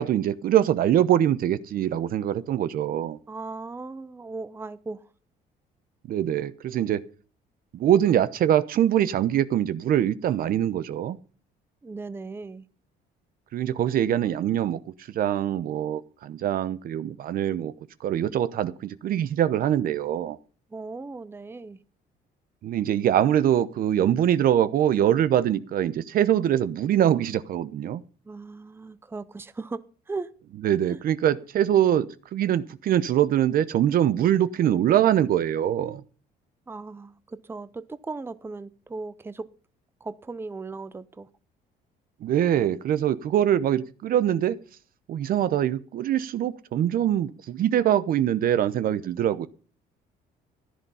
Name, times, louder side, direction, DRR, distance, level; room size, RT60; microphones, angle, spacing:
voice 1, 0.0-3.2 6.1-7.0 7.7-11.2 13.5-14.8 15.1-17.7 18.0-20.4 22.6-28.0 30.6-32.1 32.3-36.0 42.2-44.6 45.1-49.5, right 10 dB, 60° right, 0.8 m, -23 dB
voice 2, 3.3-5.1 11.8-12.7 20.7-21.8 28.3-30.3 30.9-31.0 36.7-39.5 40.0-41.3, right 3 dB, 15° right, 0.7 m, -37 dB
14.5 x 10.0 x 5.6 m
cardioid pair, 110°, 17 cm